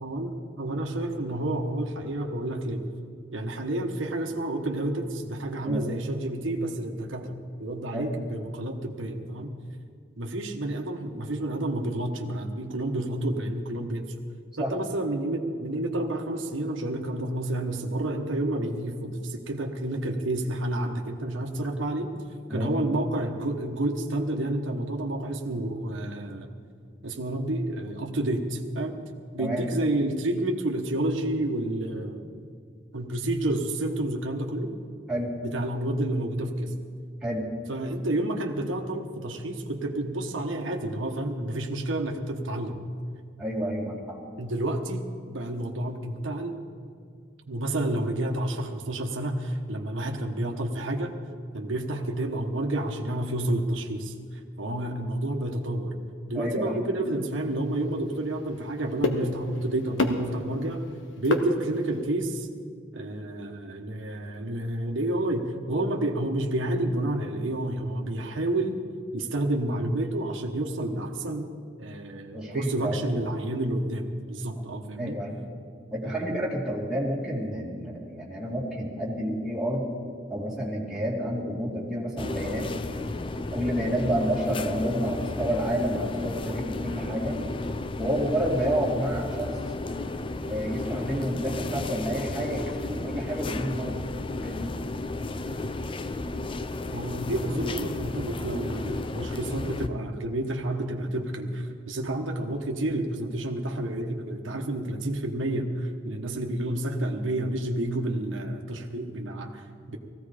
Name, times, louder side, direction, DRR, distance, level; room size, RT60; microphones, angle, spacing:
voice 1, 0.0-2.8 3.3-9.5 10.2-14.1 14.6-22.1 22.5-26.5 27.0-29.0 29.3-32.2 32.9-34.7 35.4-36.7 37.7-42.8 44.4-46.6 47.5-51.1 51.5-55.9 56.3-60.8 61.2-62.5 62.9-68.8 69.1-71.5 71.8-75.2 76.0-76.3 96.9-110.0, right 1 dB, 85° right, 2 dB, 1.2 m, -30 dB
voice 2, 22.5-22.8 29.4-29.7 35.1-35.3 37.2-37.5 43.4-44.2 56.3-56.7 72.3-73.1 74.6-74.7 75.0-75.4 75.9-79.9 80.3-82.7 83.5-87.4 88.0-89.5 90.5-94.0 94.4-94.7, equal, 5° right, -5 dB, 2.6 m, -29 dB
sound 1, 57.0-62.1, left 2 dB, 80° left, 1.3 m, -32 dB
sound 2, 82.2-99.9, left 2 dB, 25° left, 0.5 m, -33 dB
18.0 x 15.5 x 5.0 m, 2.2 s
head